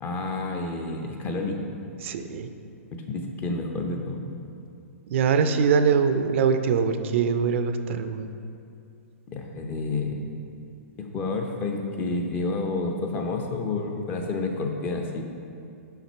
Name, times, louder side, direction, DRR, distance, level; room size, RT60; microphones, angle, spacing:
voice 1, 0.0-1.6 2.9-4.2 9.3-10.2 11.0-15.2, left 3 dB, 25° left, 3 dB, 0.7 m, -29 dB
voice 2, 2.0-2.5 5.1-8.3, right 6 dB, 55° right, 9 dB, 0.4 m, -23 dB
5.9 x 5.8 x 4.4 m, 2.5 s
hypercardioid pair, 140°, 8 cm